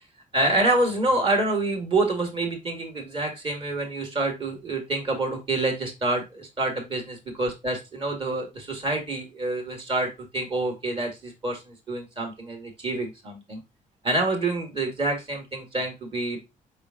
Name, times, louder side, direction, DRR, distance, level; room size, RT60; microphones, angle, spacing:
voice 1, 0.3-13.6 14.0-16.4, right 2 dB, 35° right, 4 dB, 1.6 m, -27 dB
4.9 x 4.4 x 2.4 m, 0.23 s
cardioid pair, 140°, 15 cm